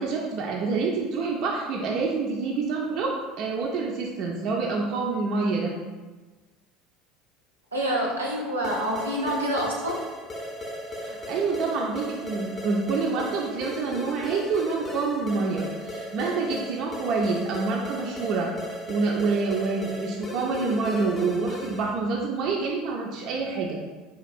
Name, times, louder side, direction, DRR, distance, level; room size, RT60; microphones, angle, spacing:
voice 1, 0.0-5.7 11.0-18.5 18.9-23.8, right 4 dB, 50° right, -1 dB, 0.4 m, -27 dB
voice 2, 7.7-10.0, equal, 85° right, -2 dB, 0.7 m, -27 dB
sound 1, 8.6-22.0, equal, 25° left, 0.5 m, -36 dB
3.9 x 2.8 x 2.4 m, 1.3 s
figure-of-eight pair, 70°, 0 cm